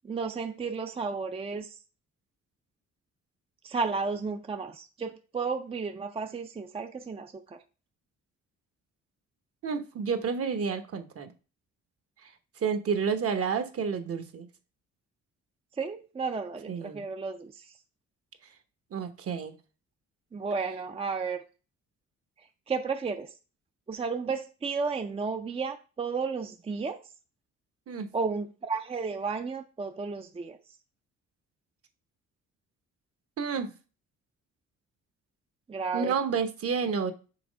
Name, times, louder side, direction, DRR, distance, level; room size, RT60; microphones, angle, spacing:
voice 1, 0.0-1.8 3.6-7.6 15.8-17.6 20.3-21.4 22.7-23.3 23.9-27.0 28.1-30.6 35.7-36.1, right 4 dB, 20° right, 0.5 m, -33 dB
voice 2, 9.6-11.3 12.2-12.3 12.6-14.5 16.7-17.0 18.9-19.5 27.9-28.1 33.4-33.7 35.9-37.1, right 6 dB, 50° right, 1.0 m, -30 dB
6.0 x 3.2 x 5.1 m
cardioid pair, 90°, 30 cm